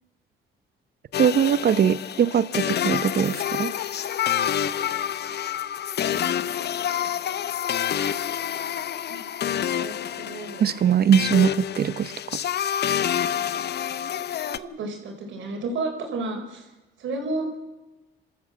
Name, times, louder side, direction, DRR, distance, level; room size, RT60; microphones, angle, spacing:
sound 1, 1.1-14.6, left 10 dB, 55° left, 0.8 m, -28 dB
voice 1, 1.2-3.7 10.6-11.5 11.8-12.1, right 8 dB, 50° right, 16 dB, 0.9 m, -21 dB
voice 2, 9.5-10.7 13.3-16.7 17.0-17.5, right 2 dB, 75° right, 3 dB, 4.7 m, -33 dB
26.5 x 13.5 x 7.5 m, 1.1 s
cardioid pair, 90°, 20 cm